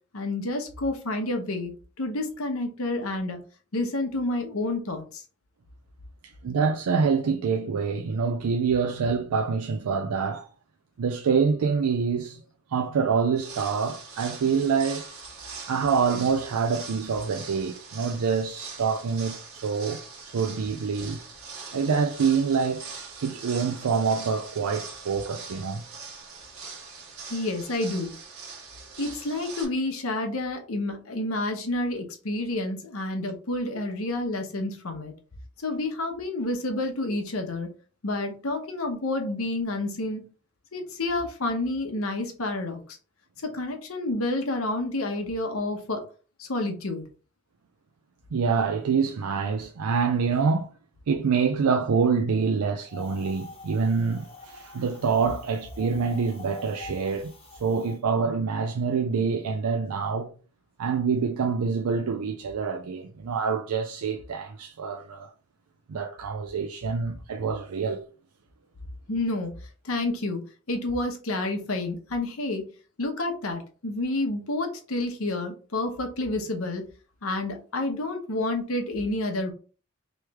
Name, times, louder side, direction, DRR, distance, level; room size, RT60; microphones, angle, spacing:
voice 1, 0.1-3.4 3.7-5.2 27.3-28.1 29.0-35.1 35.6-37.7 38.0-40.2 40.7-43.0 43.4-46.0 46.4-47.0 69.1-69.5 69.8-70.4 70.7-72.6 73.0-76.8 77.2-79.5, left 2 dB, 70° left, 0.9 m, -29 dB
voice 2, 6.2-10.5 11.0-12.4 12.7-15.0 15.7-21.2 21.7-22.8 23.2-25.8 48.3-50.7 51.1-57.3 57.6-60.3 60.8-65.3 65.9-68.0, right 5 dB, 85° right, 0.4 m, -26 dB
sound 1, 13.3-29.6, right 4 dB, 70° right, 1.3 m, -42 dB
Wind, 52.9-58.0, left 2 dB, 25° left, 0.9 m, -46 dB
3.1 x 3.1 x 3.4 m
head